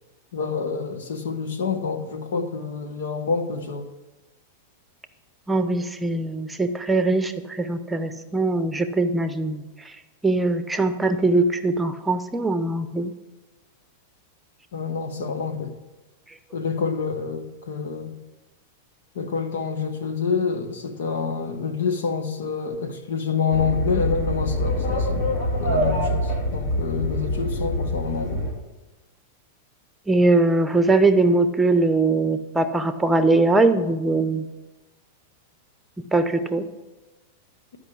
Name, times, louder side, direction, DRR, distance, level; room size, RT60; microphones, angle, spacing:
voice 1, 0.3-3.8 14.7-15.7 16.5-18.2 19.1-28.5, left 5 dB, 80° left, 1.3 m, -27 dB
voice 2, 5.5-10.0 10.2-13.1 30.1-34.5 36.1-36.6, right 2 dB, 10° right, 0.8 m, -21 dB
sound 1, 23.5-28.5, equal, 55° left, 3.4 m, -25 dB
12.0 x 5.5 x 8.5 m
hypercardioid pair, 120°, 0 cm